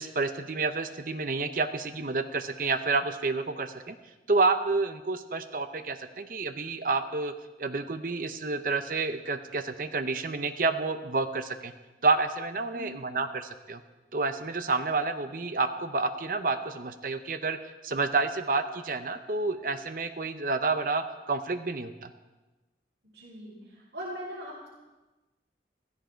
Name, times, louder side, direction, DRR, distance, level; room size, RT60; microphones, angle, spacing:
voice 1, 0.0-4.0 4.3-11.7 12.0-13.8 14.1-17.6 17.8-22.1, right 3 dB, 50° right, 9 dB, 0.7 m, -29 dB
voice 2, 23.1-23.6 23.9-24.7, equal, 85° right, -9 dB, 5.1 m, -39 dB
16.0 x 15.5 x 4.5 m, 1.1 s
head